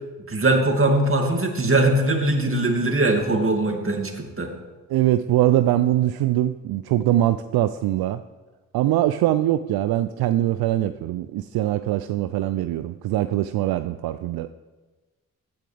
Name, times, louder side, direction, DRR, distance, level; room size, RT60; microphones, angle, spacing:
voice 1, 0.3-4.5, right 2 dB, 35° right, 2 dB, 2.4 m, -21 dB
voice 2, 4.9-8.2 8.7-14.5, right 13 dB, 70° right, 12 dB, 0.5 m, -22 dB
15.5 x 8.8 x 3.4 m, 1.2 s
hypercardioid pair, 40°, 39 cm